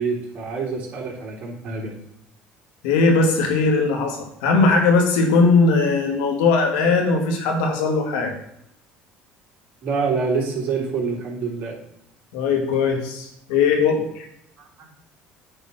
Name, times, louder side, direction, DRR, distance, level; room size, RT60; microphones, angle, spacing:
voice 1, 0.0-1.9 9.8-11.8 14.6-14.7, right 4 dB, 45° right, -2 dB, 3.4 m, -26 dB
voice 2, 2.8-8.3 12.3-14.3, left 4 dB, 90° left, 2 dB, 2.1 m, -19 dB
8.9 x 4.2 x 6.0 m, 0.73 s
supercardioid pair, 100°, 4 cm